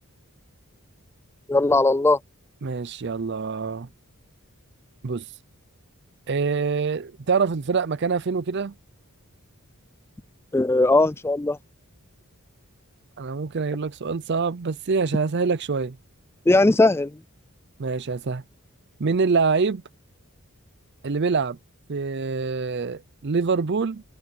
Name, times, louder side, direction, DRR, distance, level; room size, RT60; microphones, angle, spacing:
voice 1, 1.5-2.2 10.5-11.6 16.5-17.2, left 2 dB, 10° left, 0.3 m, -18 dB
voice 2, 2.6-3.9 5.0-5.3 6.3-8.7 13.2-16.0 17.8-18.4 19.0-19.8 21.0-21.6 21.9-24.0, right 4 dB, 50° right, 0.5 m, -25 dB
head